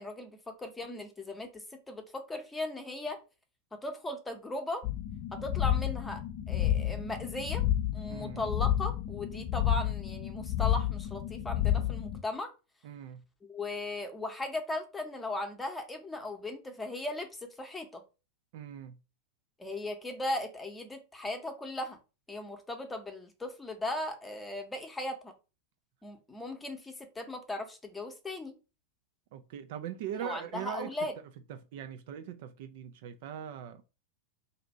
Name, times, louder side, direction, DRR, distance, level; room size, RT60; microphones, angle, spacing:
voice 1, 0.0-3.2 3.7-4.8 5.3-6.2 6.5-7.6 7.9-12.5 13.4-17.3 17.6-18.0 19.6-22.0 22.3-25.3 26.0-28.5 30.1-31.1, left 2 dB, 10° left, 0.8 m, -37 dB
sound 1, 4.8-12.2, left 12 dB, 45° left, 0.5 m, -30 dB
voice 2, 8.1-8.5 12.8-13.2 18.5-19.0 29.3-30.9 31.5-33.8, right 9 dB, 50° right, 0.3 m, -41 dB
2.6 x 2.4 x 4.2 m
figure-of-eight pair, 90°, 0 cm